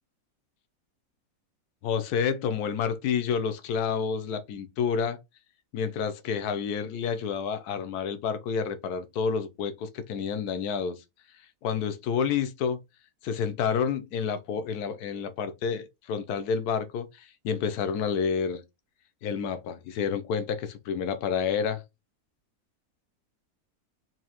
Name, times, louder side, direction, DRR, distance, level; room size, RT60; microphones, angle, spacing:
voice 1, 1.8-5.2 5.7-11.0 11.6-12.8 13.2-18.6 19.2-21.8, left 6 dB, 80° left, 1.2 m, -29 dB
4.3 x 2.7 x 2.9 m
omnidirectional pair, 1.7 m